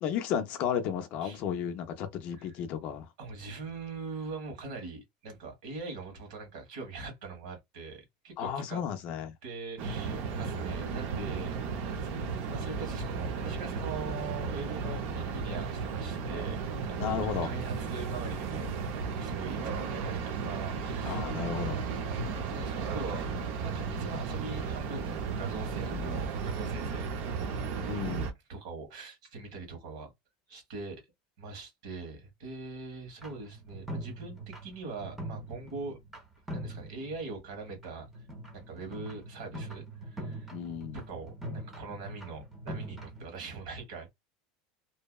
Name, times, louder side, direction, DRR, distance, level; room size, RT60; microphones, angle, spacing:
voice 1, 0.0-3.1 8.4-9.3 16.9-17.5 21.0-21.8 25.9-26.3 27.9-28.3 40.5-41.0, left 8 dB, 40° left, 0.4 m, -33 dB
voice 2, 3.2-8.8 9.4-11.5 11.8-21.3 22.4-27.4 28.5-30.1 30.5-31.0 31.4-36.0 36.5-38.2 38.5-40.5 40.9-44.1, right 4 dB, 70° right, 1.4 m, -42 dB
sound 1, 9.8-28.3, right 5 dB, 45° right, 0.5 m, -34 dB
sound 2, 33.2-36.2 36.5-37.3 37.7-43.2, right 1 dB, 5° right, 0.6 m, -42 dB
2.6 x 2.1 x 2.2 m
supercardioid pair, 175°, 4 cm